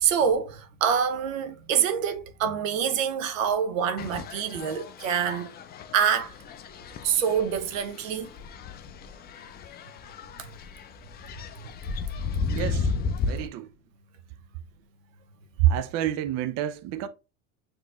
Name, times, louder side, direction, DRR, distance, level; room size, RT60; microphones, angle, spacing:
voice 1, 0.0-5.5 5.9-6.3 7.0-8.3, right 8 dB, 85° right, 0.9 m, -26 dB
sound 1, 4.0-13.5, left 4 dB, 25° left, 0.4 m, -34 dB
voice 2, 12.5-12.9 13.3-13.7 15.6-17.1, right 12 dB, 45° right, 0.5 m, -27 dB
6.4 x 3.1 x 2.4 m
supercardioid pair, 115°, 39 cm